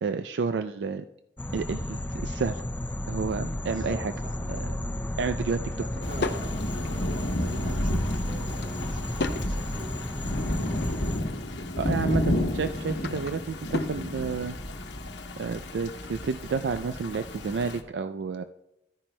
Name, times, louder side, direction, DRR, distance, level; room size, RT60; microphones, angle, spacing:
voice 1, 0.0-1.1 1.5-2.6 3.1-4.1 5.2-5.7 11.8-14.6 15.4-18.4, right 5 dB, 80° right, 9 dB, 0.4 m, -30 dB
sound 1, 1.4-11.2, left 1 dB, 10° left, 0.4 m, -33 dB
voice 2, 3.6-5.2 5.8-6.6 7.4-10.2, equal, 50° right, 1 dB, 1.7 m, -43 dB
Drawer open or close / Wood, 5.5-6.5 8.2-9.5 10.0-11.2 12.5-14.0, left 3 dB, 70° left, 0.6 m, -36 dB
Thunder / Rain, 6.0-17.8, left 1 dB, 85° left, 1.1 m, -32 dB
14.0 x 10.0 x 2.2 m, 0.92 s
head